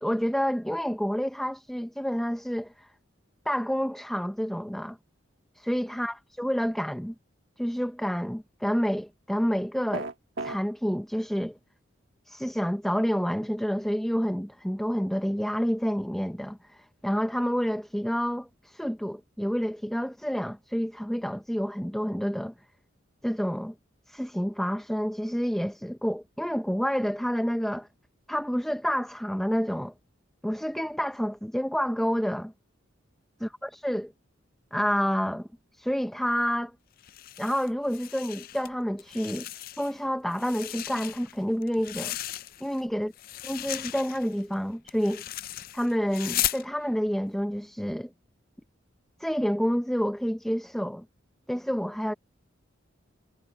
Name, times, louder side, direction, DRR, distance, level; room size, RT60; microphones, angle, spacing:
voice 1, 0.0-2.9 3.5-5.0 5.7-7.1 7.6-10.1 10.4-11.6 12.3-22.5 23.2-23.7 24.1-27.9 28.3-29.9 30.4-32.5 33.4-34.1 34.7-35.5 35.8-36.7 37.4-39.5 39.8-42.2 42.6-43.1 43.4-45.2 45.7-48.1 49.2-51.0 51.5-52.1, equal, ahead, 0.7 m, -29 dB
sound 1, 9.9-10.6, right 3 dB, 70° right, 1.4 m, -33 dB
sound 2, 37.0-38.7 39.0-40.0 40.3-42.8 43.1-46.6, left 14 dB, 50° left, 0.4 m, -36 dB
head